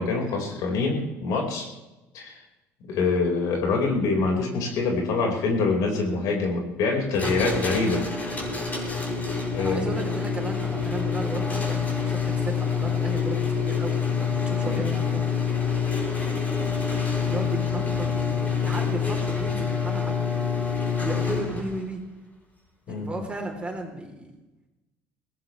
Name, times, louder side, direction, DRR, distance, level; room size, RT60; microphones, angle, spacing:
voice 1, 0.0-1.7 2.1-2.4 2.9-8.0 9.5-9.9 14.6-14.8 22.9-23.2, left 3 dB, 65° left, 0 dB, 5.3 m, -25 dB
sound 1, 7.1-21.8, left 6 dB, 25° left, 6.8 m, -27 dB
voice 2, 9.6-15.2 17.2-22.0 22.9-24.3, right 2 dB, 15° right, 1 dB, 3.8 m, -35 dB
21.0 x 17.5 x 3.4 m, 1.0 s
supercardioid pair, 95°, 6 cm